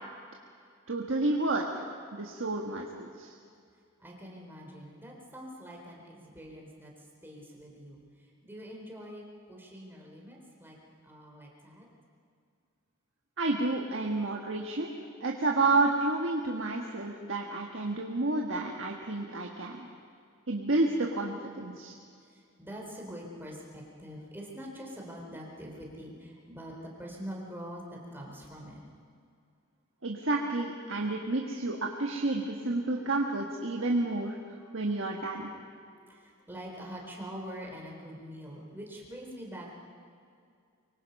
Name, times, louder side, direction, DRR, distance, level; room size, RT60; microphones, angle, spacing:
voice 1, 0.9-1.8 2.1-3.3 13.4-14.9 15.2-19.9 20.5-21.9 30.0-34.4 34.7-35.5, right 2 dB, 65° right, 0 dB, 1.6 m, -30 dB
voice 2, 4.0-10.8 11.0-11.9 19.8-20.0 21.6-21.9 22.2-28.8 32.9-33.0 34.5-39.7, equal, 10° right, -2 dB, 4.0 m, -45 dB
24.0 x 23.5 x 5.4 m, 2.3 s
head